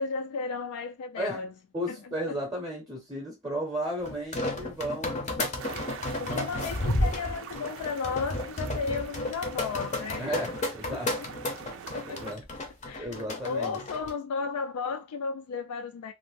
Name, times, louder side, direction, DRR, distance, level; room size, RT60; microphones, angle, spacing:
voice 1, 0.0-1.5 1.9-2.4 6.2-10.3 10.9-11.0 11.9-12.2 12.8-16.1, left 5 dB, 80° left, 0.3 m, -34 dB
voice 2, 1.2-1.5 1.7-5.4 6.2-6.4 10.2-11.1 12.0-12.4 13.0-13.8, equal, 15° right, 0.6 m, -34 dB
sound 1, 4.1-14.1, left 1 dB, 30° left, 0.6 m, -32 dB
sound 2, 5.6-12.3, right 7 dB, 60° right, 0.4 m, -44 dB
2.5 x 2.0 x 3.1 m
head